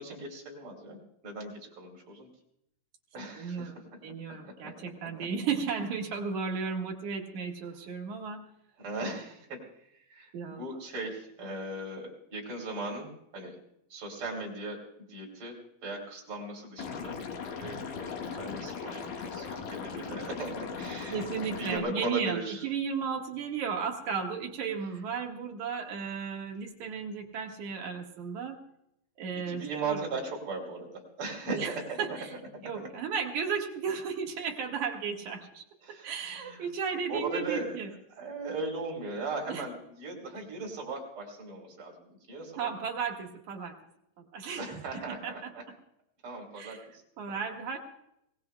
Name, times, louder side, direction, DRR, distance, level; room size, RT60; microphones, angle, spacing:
voice 1, 0.0-2.3 3.1-4.7 5.0-5.3 8.8-9.6 10.1-13.6 13.9-15.6 15.8-17.2 17.5-21.2 21.6-22.6 29.4-32.2 32.5-32.9 35.8-36.7 37.1-37.8 38.2-42.7 44.5-45.6 46.2-47.0 47.3-47.4, right 2 dB, 35° right, -1 dB, 4.1 m, -38 dB
voice 2, 3.4-3.8 4.0-8.4 10.3-10.8 21.1-28.6 29.2-30.0 31.5-32.3 32.6-37.9 39.5-39.6 42.6-43.8 44.2-45.5 46.6-46.8 47.2-47.8, right 6 dB, 55° right, 1 dB, 2.5 m, -34 dB
Liquid, 16.8-21.8, left 6 dB, 60° left, 2.9 m, -38 dB
24.5 x 18.5 x 2.3 m, 0.78 s
omnidirectional pair, 4.6 m